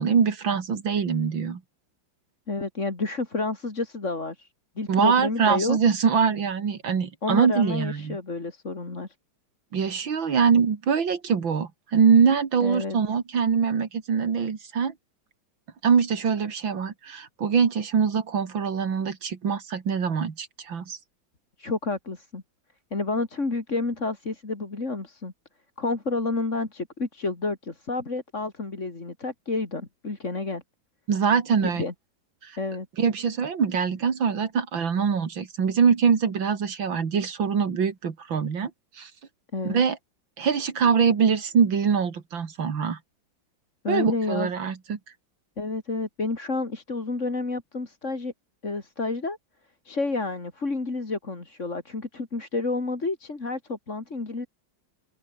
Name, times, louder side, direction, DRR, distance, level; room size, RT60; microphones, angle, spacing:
voice 1, 0.0-1.6 4.9-8.2 9.7-14.9 15.8-21.0 31.1-31.8 32.4-32.6 33.0-38.7 39.0-39.1 39.6-40.0 40.4-43.0 43.9-45.0, right 6 dB, 85° right, 3.0 m, -23 dB
voice 2, 2.5-4.5 4.8-5.8 7.2-9.1 12.6-13.0 21.6-22.4 22.9-25.3 25.8-30.6 31.6-31.9 32.6-32.9 39.5-39.8 43.8-44.5 45.6-48.3 48.6-49.4 49.8-54.5, left 3 dB, 35° left, 3.5 m, -30 dB
open air
omnidirectional pair, 2.1 m